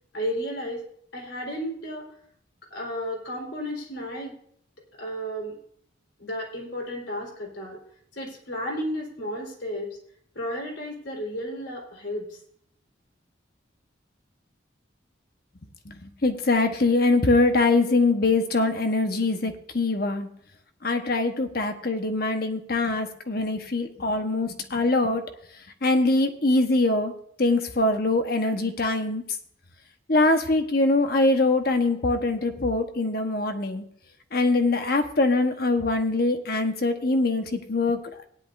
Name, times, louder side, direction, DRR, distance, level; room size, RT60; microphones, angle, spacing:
voice 1, 0.1-0.8 1.1-2.1 2.7-4.3 5.0-5.6 6.2-7.8 8.1-10.0 10.3-12.4, equal, 70° left, -1 dB, 3.8 m, -33 dB
voice 2, 15.8-20.3 20.8-25.2 25.8-27.1 27.4-29.2 30.1-33.9 34.3-38.0, left 2 dB, 50° left, 5 dB, 1.2 m, -23 dB
17.5 x 10.5 x 2.6 m, 0.65 s
head